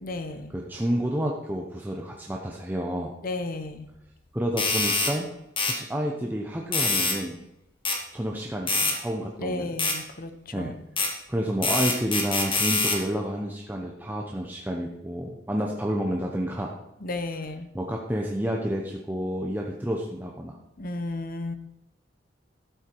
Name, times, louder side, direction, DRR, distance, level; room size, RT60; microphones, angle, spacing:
voice 1, 0.0-0.5 3.2-3.9 9.4-10.7 17.0-17.7 20.8-21.5, left 2 dB, 50° left, 9 dB, 1.0 m, -33 dB
voice 2, 0.5-3.1 4.3-5.3 5.6-7.4 8.1-9.7 10.5-10.8 11.3-16.7 17.7-20.6, equal, 10° right, 0 dB, 0.9 m, -30 dB
sound 1, 4.6-5.1 5.6-5.8 6.7-7.2 7.9-8.0 8.7-9.0 9.8-10.0 11.0-11.1 11.6-13.0, left 3 dB, 30° left, 1.9 m, -25 dB
12.5 x 8.0 x 4.6 m, 0.93 s
head